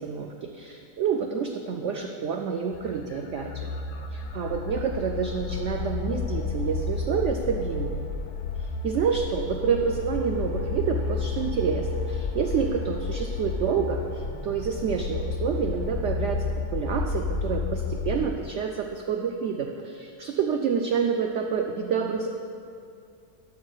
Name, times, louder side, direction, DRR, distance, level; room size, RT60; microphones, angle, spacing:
voice 1, 0.0-3.7 4.1-8.0 8.6-22.3, right 6 dB, 85° right, 3 dB, 0.6 m, -28 dB
sound 1, 2.7-18.3, left 4 dB, 80° left, 1.2 m, -31 dB
12.5 x 11.0 x 2.4 m, 2.5 s
omnidirectional pair, 1.8 m